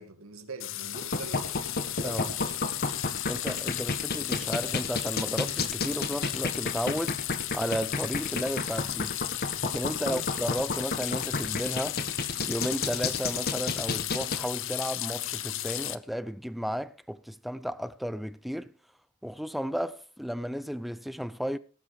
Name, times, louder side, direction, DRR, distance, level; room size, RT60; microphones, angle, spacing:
voice 1, 0.0-1.6 2.0-2.8 10.0-10.4, right 3 dB, 90° right, 2.2 m, -43 dB
sound 1, 0.6-16.0, left 14 dB, 65° left, 0.8 m, -34 dB
sound 2, 0.9-14.4, left 3 dB, 50° left, 1.7 m, -31 dB
voice 2, 3.3-9.1 9.6-12.0 12.4-18.7 19.2-21.6, equal, ahead, 0.5 m, -33 dB
18.0 x 8.4 x 4.9 m
head